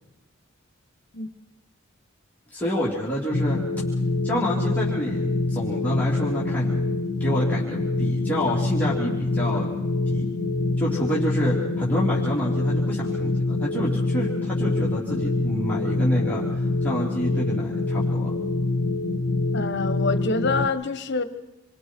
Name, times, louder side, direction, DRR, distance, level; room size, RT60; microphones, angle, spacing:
voice 1, 2.5-3.6 4.2-6.8 7.2-9.7 10.1-10.2 10.8-18.3, equal, 10° left, 3.3 m, -28 dB
sound 1, 3.3-20.7, left 2 dB, 90° left, 0.9 m, -25 dB
voice 2, 19.5-21.2, left 3 dB, 60° left, 1.3 m, -26 dB
28.0 x 23.5 x 4.6 m
head